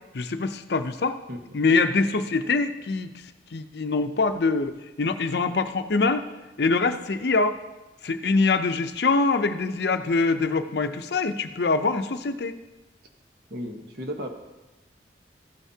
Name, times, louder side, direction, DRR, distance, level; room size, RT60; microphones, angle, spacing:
voice 1, 0.1-1.2 1.5-3.1 3.5-6.3 6.6-7.6 8.0-12.5, left 3 dB, 60° left, 9 dB, 0.6 m, -24 dB
voice 2, 13.5-14.3, equal, 60° right, 3 dB, 1.2 m, -34 dB
14.5 x 9.2 x 2.8 m, 1.1 s
head